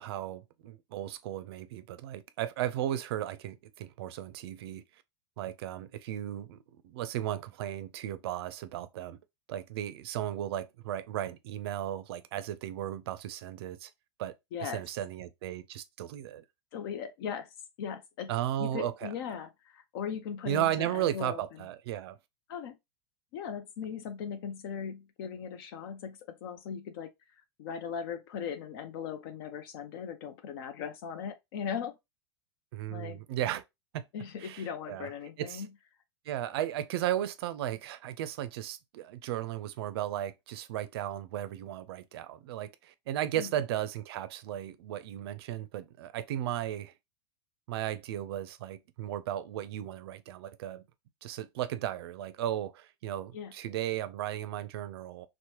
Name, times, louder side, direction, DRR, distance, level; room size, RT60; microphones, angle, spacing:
voice 1, 0.0-4.8 5.4-6.6 6.8-9.2 9.5-13.9 14.2-14.3 14.6-16.4 18.3-19.1 20.5-22.2 32.7-33.6 33.9-34.0 34.4-35.1 35.4-35.6 36.3-46.9 47.7-50.8 51.2-55.3, right 12 dB, 65° right, 0.4 m, -35 dB
voice 2, 14.5-14.8 16.7-18.3 18.6-21.4 22.5-22.8 23.3-32.0 32.9-33.2 34.1-35.7 43.4-43.5 53.3-53.5, left 7 dB, 60° left, 0.5 m, -39 dB
3.0 x 2.1 x 2.8 m
hypercardioid pair, 110°, 14 cm